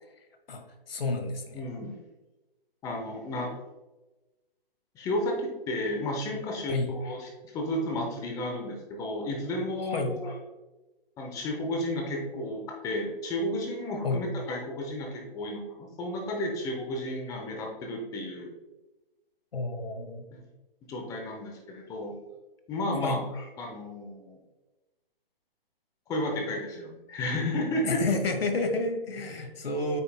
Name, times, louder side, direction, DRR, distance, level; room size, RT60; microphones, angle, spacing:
voice 1, 0.5-1.6 6.7-7.0 9.9-10.2 14.0-14.2 19.5-20.2 23.0-23.2 27.8-30.0, left 3 dB, 75° left, 5 dB, 1.4 m, -30 dB
voice 2, 1.5-2.0 2.8-3.5 4.9-10.3 11.2-18.5 20.3-20.4 20.9-22.1 22.7-24.4 26.1-28.0, left 1 dB, 10° left, 1 dB, 0.8 m, -32 dB
8.5 x 5.6 x 2.2 m, 1.1 s
hypercardioid pair, 150°, 29 cm